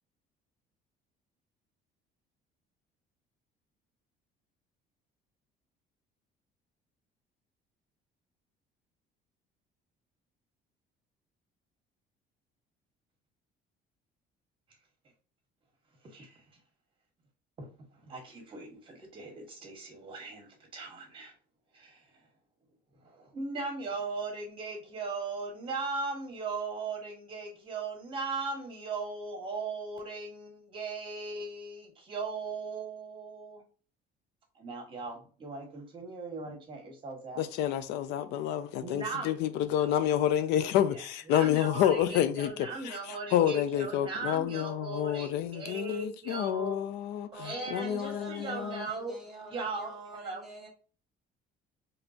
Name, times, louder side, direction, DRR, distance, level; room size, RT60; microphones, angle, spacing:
voice 1, 16.0-16.4 17.6-21.3 21.7-22.2 23.0-33.6 34.5-37.5 38.8-40.2 40.9-41.0 41.3-46.9 47.4-49.1 49.5-50.4, right 3 dB, 30° right, 1.5 m, -38 dB
voice 2, 37.4-48.9, left 10 dB, 80° left, 0.5 m, -29 dB
voice 3, 47.3-50.7, right 1 dB, ahead, 1.4 m, -45 dB
4.3 x 3.2 x 2.8 m
cardioid pair, 160°, 18 cm